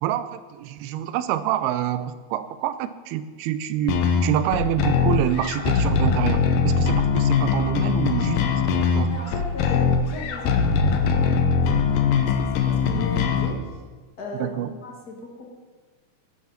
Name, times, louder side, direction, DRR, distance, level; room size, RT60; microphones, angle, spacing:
voice 1, 0.0-8.4 8.7-9.1 14.4-14.7, right 11 dB, 80° right, 13 dB, 2.5 m, -27 dB
sound 1, 3.9-13.5, left 6 dB, 70° left, 2.4 m, -21 dB
voice 2, 9.1-13.8 14.2-15.5, left 2 dB, 35° left, 0 dB, 1.6 m, -37 dB
12.0 x 11.5 x 5.9 m, 1.4 s
omnidirectional pair, 4.7 m